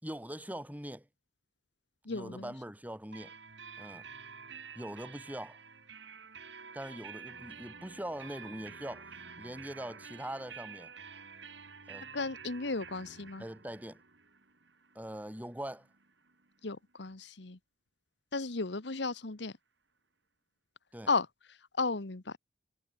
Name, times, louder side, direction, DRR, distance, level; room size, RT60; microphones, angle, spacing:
voice 1, 0.0-1.1 2.1-3.3 3.8-4.1 4.7-5.6 6.7-9.1 9.4-10.9 11.9-12.1 13.4-14.0 14.9-15.9 20.9-21.1, right 1 dB, 10° right, 5.0 m, -42 dB
voice 2, 2.0-2.5 12.1-13.4 16.6-17.6 18.3-19.5 21.1-21.3 21.7-22.4, left 3 dB, 65° left, 1.3 m, -34 dB
sound 1, 3.1-16.7, right 5 dB, 70° right, 6.9 m, -50 dB
head